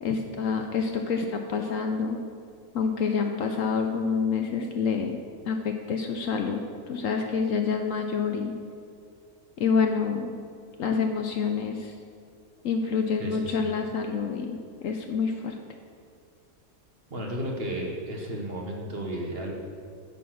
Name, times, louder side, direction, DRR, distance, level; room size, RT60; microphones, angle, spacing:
voice 1, 0.0-2.2 2.7-5.2 5.5-8.5 9.6-10.3 10.8-11.9 12.6-15.5, left 5 dB, 65° left, 4 dB, 0.9 m, -27 dB
voice 2, 13.2-13.6 17.1-19.5, right 1 dB, 40° right, 0 dB, 1.2 m, -33 dB
9.0 x 6.0 x 6.3 m, 2.3 s
omnidirectional pair, 1.7 m